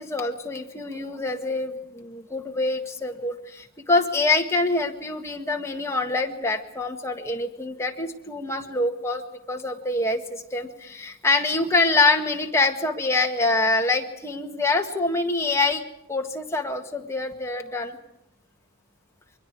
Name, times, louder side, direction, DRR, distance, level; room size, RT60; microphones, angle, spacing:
voice 1, 0.0-9.2 9.5-15.8 16.1-18.0, left 3 dB, 15° left, 2 dB, 1.8 m, -25 dB
29.0 x 22.5 x 4.8 m, 0.87 s
head